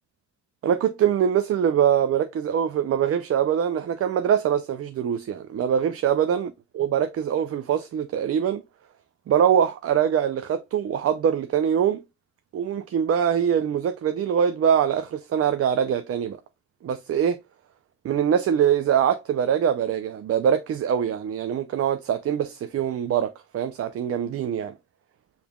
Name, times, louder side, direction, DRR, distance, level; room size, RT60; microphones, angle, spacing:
voice 1, 0.6-8.6 9.3-12.0 12.5-16.4 16.8-17.4 18.0-24.7, right 8 dB, 50° right, 0.5 m, -23 dB
7.1 x 3.3 x 2.2 m
cardioid pair, 90°, 30 cm